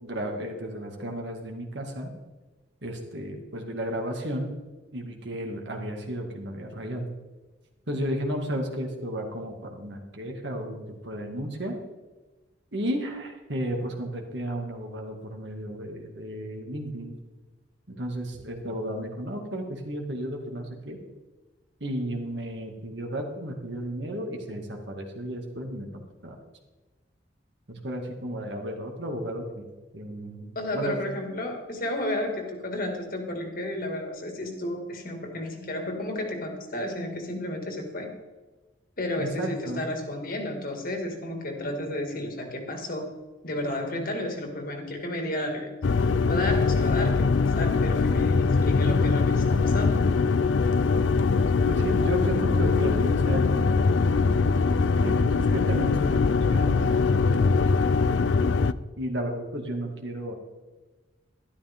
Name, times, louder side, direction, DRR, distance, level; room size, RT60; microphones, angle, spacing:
voice 1, 0.0-2.1 2.8-4.5 4.9-7.1 7.9-11.8 12.7-17.2 17.9-21.0 21.8-26.4 27.7-29.7 29.9-30.9 39.2-39.9 51.7-54.1 55.0-58.2 59.0-60.3, right 1 dB, 65° right, 2 dB, 2.2 m, -33 dB
voice 2, 30.6-38.1 39.0-43.1 43.4-45.7 46.2-50.1, left 1 dB, 50° left, 3 dB, 2.2 m, -32 dB
sound 1, 45.8-58.7, left 4 dB, 80° left, 0.5 m, -22 dB
12.5 x 12.0 x 3.7 m, 1.2 s
head